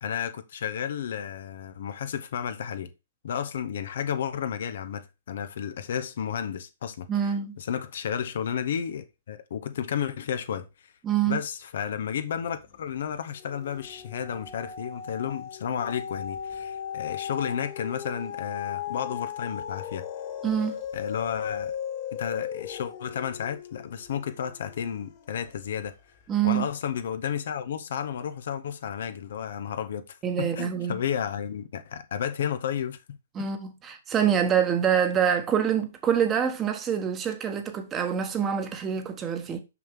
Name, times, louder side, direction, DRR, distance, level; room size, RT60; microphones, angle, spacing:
voice 1, 0.0-2.9 3.2-7.1 7.6-10.9 11.3-20.1 20.9-21.7 22.1-25.9 26.4-33.5, left 8 dB, 60° left, 0.8 m, -32 dB
voice 2, 7.1-7.6 11.0-11.4 20.4-20.7 26.3-26.6 30.2-31.0 33.3-39.6, right 8 dB, 20° right, 1.2 m, -25 dB
sound 1, 12.3-12.8 13.2-25.7 26.2-26.3, left 8 dB, 35° left, 1.3 m, -37 dB
6.0 x 5.7 x 3.6 m
figure-of-eight pair, 120°, 0 cm